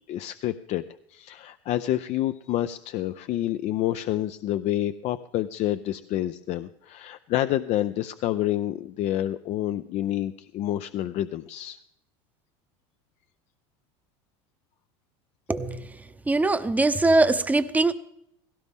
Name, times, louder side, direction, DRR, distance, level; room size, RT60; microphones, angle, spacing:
voice 1, 0.1-0.8 1.1-11.8, left 13 dB, 50° left, 0.5 m, -28 dB
voice 2, 15.5-15.8 16.3-17.9, right 2 dB, 10° right, 0.8 m, -21 dB
17.0 x 16.5 x 3.6 m
supercardioid pair, 115°, 15 cm